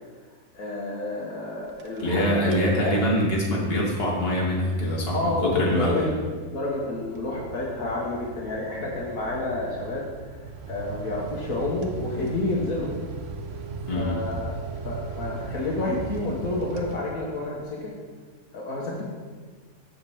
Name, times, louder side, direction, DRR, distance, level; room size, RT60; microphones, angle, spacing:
voice 1, 0.5-2.9 5.1-6.2 6.4-12.9 13.9-14.6 14.8-17.9 18.5-19.0, left 2 dB, 65° left, -3 dB, 1.6 m, -29 dB
sound 1, 1.6-2.2 2.4-2.8 3.2-17.5, right 4 dB, 60° right, 1.0 m, -38 dB
voice 2, 2.0-6.1 13.9-14.2, equal, 40° left, -3 dB, 1.9 m, -24 dB
7.9 x 4.4 x 7.0 m, 1.5 s
omnidirectional pair, 1.6 m